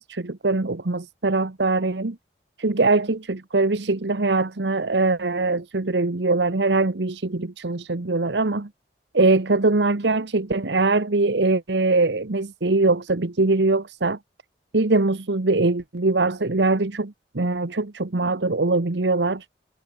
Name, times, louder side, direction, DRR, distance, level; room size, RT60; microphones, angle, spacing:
voice 1, 0.1-2.2 2.6-8.7 9.1-14.2 14.7-19.4, right 3 dB, 80° right, 1.1 m, -22 dB
head